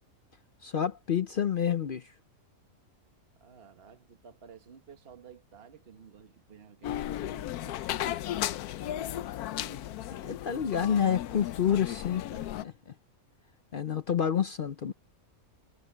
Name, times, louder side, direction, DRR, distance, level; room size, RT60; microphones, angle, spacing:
voice 1, 0.6-2.1 10.2-12.9 13.7-14.9, left 8 dB, 55° left, 0.6 m, -29 dB
voice 2, 3.4-8.0 8.8-10.2, right 7 dB, 45° right, 1.5 m, -54 dB
sound 1, 6.8-12.6, left 12 dB, 90° left, 1.1 m, -35 dB
omnidirectional pair, 1.5 m